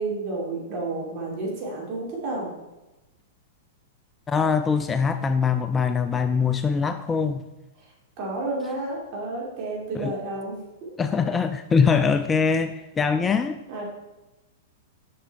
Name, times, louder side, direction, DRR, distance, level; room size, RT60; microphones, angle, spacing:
voice 1, 0.0-2.5 7.8-7.9 8.2-10.9 13.7-13.8, right 2 dB, 40° right, -3 dB, 2.7 m, -31 dB
voice 2, 4.3-7.4 9.9-10.1 11.0-13.6, left 5 dB, 15° left, 10 dB, 0.3 m, -23 dB
6.7 x 6.0 x 4.2 m, 1.0 s
figure-of-eight pair, 100°, 0 cm